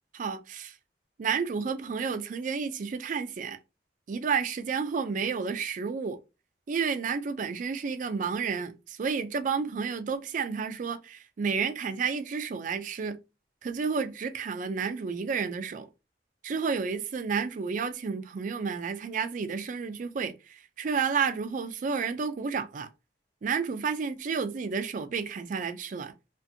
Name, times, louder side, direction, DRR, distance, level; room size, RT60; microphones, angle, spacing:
voice 1, 0.1-0.7 1.2-3.6 4.1-6.2 6.7-13.2 13.6-15.9 16.4-22.9 23.4-26.1, right 5 dB, 50° right, 0.4 m, -31 dB
2.5 x 2.5 x 2.6 m
head